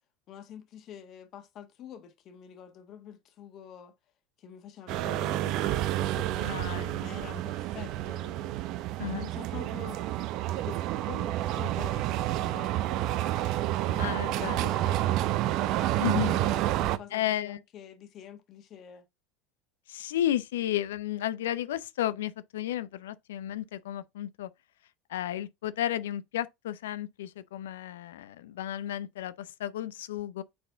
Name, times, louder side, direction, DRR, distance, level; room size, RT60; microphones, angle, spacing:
voice 1, 0.3-3.9 4.4-6.6 6.9-8.6 9.2-10.0 10.6-13.2 13.8-15.2 16.0-19.0, left 9 dB, 50° left, 1.5 m, -47 dB
sound 1, 4.9-17.0, right 14 dB, 60° right, 0.6 m, -29 dB
voice 2, 6.4-7.0 7.3-7.4 7.8-7.9 9.0-9.3 14.0-14.6 16.0-16.3 17.1-17.6 19.9-24.5 25.1-30.4, left 12 dB, 80° left, 0.5 m, -33 dB
7.6 x 4.2 x 3.4 m
hypercardioid pair, 85°, 0 cm